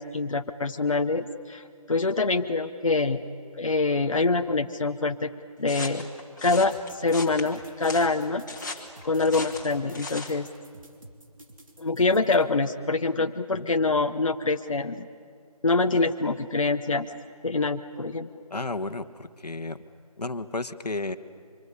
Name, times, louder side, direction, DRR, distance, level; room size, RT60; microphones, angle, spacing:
voice 1, 0.0-3.2 3.6-5.3 5.6-6.1 6.4-8.4 8.7-10.5 11.8-15.1 15.6-17.1 17.4-18.3, left 3 dB, 55° left, 6 dB, 1.0 m, -25 dB
sound 1, 5.7-10.4, left 3 dB, 30° left, 2.2 m, -38 dB
sound 2, 6.5-12.4, right 1 dB, 55° right, 3.1 m, -49 dB
voice 2, 18.5-19.8 20.2-21.2, left 2 dB, 85° left, 10 dB, 1.4 m, -32 dB
25.5 x 25.0 x 8.3 m, 2.2 s
figure-of-eight pair, 175°, 20 cm